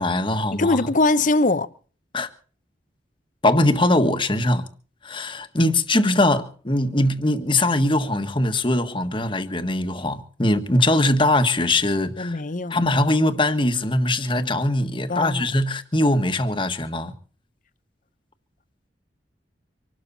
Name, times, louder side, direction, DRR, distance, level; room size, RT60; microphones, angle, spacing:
voice 1, 0.0-0.8 2.1-2.3 3.4-4.7 5.0-12.4 12.7-17.1, left 1 dB, 30° left, 1.5 m, -21 dB
voice 2, 0.5-1.7 12.2-12.8 15.1-15.5, left 2 dB, 45° left, 0.9 m, -21 dB
25.5 x 12.5 x 4.2 m
head